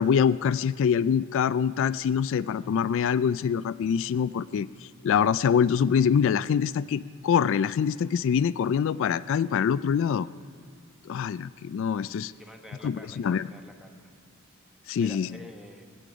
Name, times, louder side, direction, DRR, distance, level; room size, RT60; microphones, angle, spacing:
voice 1, 0.0-10.3 11.1-12.3 12.8-13.5 14.9-15.4, left 7 dB, 65° left, 17 dB, 0.3 m, -25 dB
voice 2, 12.4-14.1 14.4-14.6 15.0-16.0, left 1 dB, ahead, 3 dB, 1.1 m, -48 dB
22.0 x 8.5 x 5.0 m, 2.3 s
head